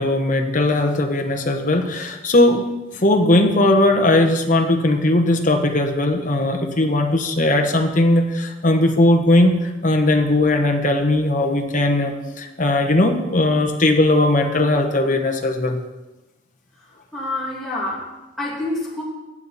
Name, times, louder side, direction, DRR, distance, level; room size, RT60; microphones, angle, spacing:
voice 1, 0.0-2.6 3.0-15.8, left 1 dB, 40° left, 4 dB, 1.2 m, -18 dB
voice 2, 17.1-19.0, left 2 dB, ahead, -7 dB, 2.5 m, -27 dB
14.5 x 8.3 x 4.2 m, 1.1 s
head